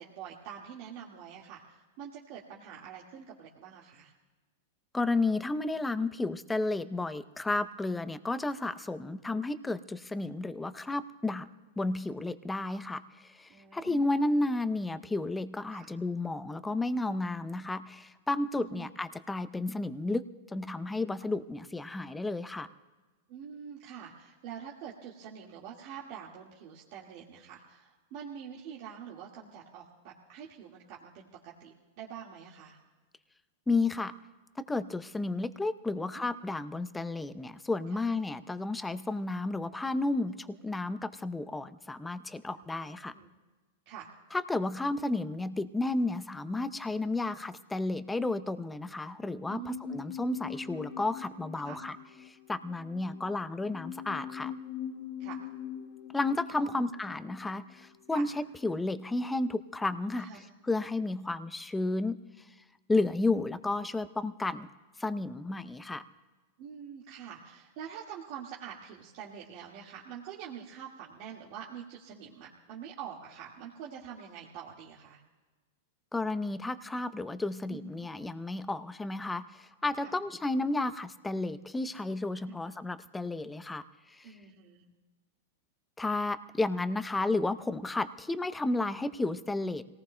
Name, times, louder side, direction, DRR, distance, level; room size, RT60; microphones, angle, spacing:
voice 1, 0.0-4.1 13.5-14.1 15.7-15.9 18.6-18.9 23.3-32.8 37.9-38.0 42.5-43.3 43.9-44.1 47.0-47.1 49.5-50.1 51.6-51.8 53.2-53.3 55.2-55.4 56.6-56.8 58.1-58.3 60.1-60.4 66.6-75.2 77.7-78.1 80.0-80.1 82.4-82.6 84.2-84.8, right 8 dB, 55° right, -4 dB, 1.8 m, -46 dB
voice 2, 4.9-11.5 11.8-20.2 20.5-22.7 33.7-34.1 34.6-43.1 44.3-52.0 52.3-54.5 56.1-62.5 62.9-64.7 65.0-66.0 76.1-84.3 86.0-89.9, left 2 dB, 10° left, 13 dB, 0.6 m, -32 dB
sound 1, 49.4-58.7 59.0-59.1, left 9 dB, 50° left, 1.9 m, -43 dB
27.0 x 18.5 x 2.2 m, 1.2 s
hypercardioid pair, 120°, 0 cm